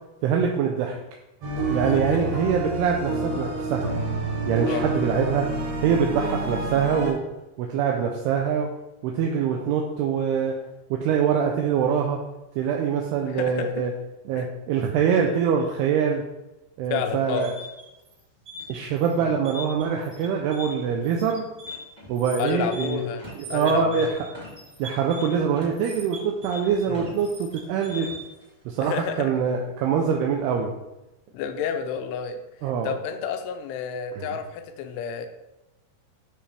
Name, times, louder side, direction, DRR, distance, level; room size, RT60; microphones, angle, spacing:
voice 1, 0.2-1.0 1.7-3.9 4.5-5.5 5.8-7.2 7.6-8.7 9.0-10.5 10.9-12.2 12.6-13.9 14.3-16.2 16.8-17.5 18.7-21.5 22.1-23.0 23.5-24.3 24.8-28.1 28.7-30.7 32.6-32.9 34.1-34.4, right 7 dB, 80° right, 1 dB, 2.5 m, -24 dB
sound 1, 1.4-7.1, right 2 dB, 60° right, 2.8 m, -28 dB
voice 2, 1.9-2.2 4.7-4.8 13.3-13.9 14.4-14.5 16.9-17.5 19.2-19.4 22.4-24.2 26.9-27.1 28.8-29.3 31.3-32.4 32.8-35.3, left 7 dB, 80° left, 6 dB, 2.7 m, -30 dB
sound 2, 17.3-28.4, left 1 dB, 20° right, 2.2 m, -40 dB
9.6 x 5.2 x 3.4 m, 0.97 s
omnidirectional pair, 5.0 m